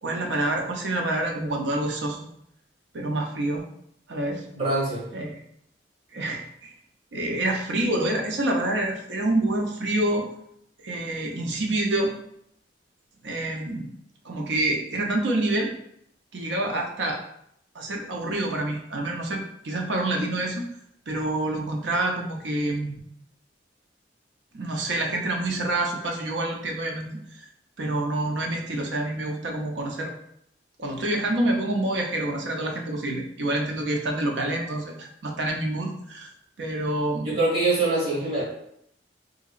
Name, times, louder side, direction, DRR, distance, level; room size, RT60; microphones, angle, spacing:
voice 1, 0.0-2.2 2.9-3.6 4.1-4.4 5.1-5.4 6.1-6.7 7.1-10.2 10.8-12.1 13.2-13.9 14.2-15.7 16.3-17.2 17.7-20.7 21.1-23.0 24.5-27.1 27.8-30.1 30.8-36.3 36.6-37.4, right 1 dB, 85° right, 1 dB, 0.6 m, -27 dB
voice 2, 4.5-5.1 37.2-38.4, right 2 dB, 55° right, -7 dB, 1.2 m, -24 dB
3.7 x 2.9 x 2.4 m, 0.73 s
head